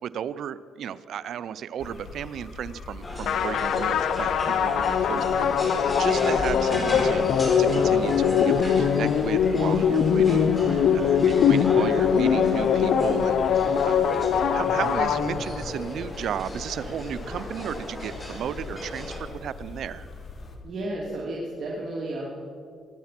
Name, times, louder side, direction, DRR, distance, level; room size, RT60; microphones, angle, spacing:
voice 1, 0.0-5.5 6.0-14.2 14.5-20.1, right 9 dB, 70° right, 16 dB, 0.6 m, -34 dB
sound 1, 1.8-20.6, left 3 dB, 40° left, 2.4 m, -41 dB
sound 2, 3.0-19.2, left 1 dB, 20° left, 4.5 m, -34 dB
sound 3, 3.3-15.8, left 7 dB, 70° left, 0.8 m, -22 dB
voice 2, 5.1-5.7 6.8-6.9 20.6-22.5, right 1 dB, 50° right, -4 dB, 3.0 m, -34 dB
22.5 x 10.5 x 6.0 m, 2.4 s
cardioid pair, 90°, 0 cm